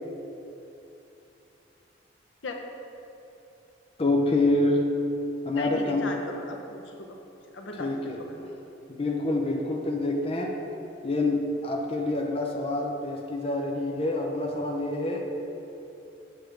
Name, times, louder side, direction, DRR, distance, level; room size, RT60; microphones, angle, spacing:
voice 1, 4.0-4.8 5.4-6.1 7.8-8.2 8.9-10.5 11.0-15.2, left 2 dB, 30° left, 1 dB, 0.5 m, -26 dB
voice 2, 5.6-7.2 7.5-7.9 8.3-8.4, left 3 dB, 80° left, 2 dB, 0.8 m, -37 dB
8.1 x 6.2 x 3.3 m, 2.9 s
head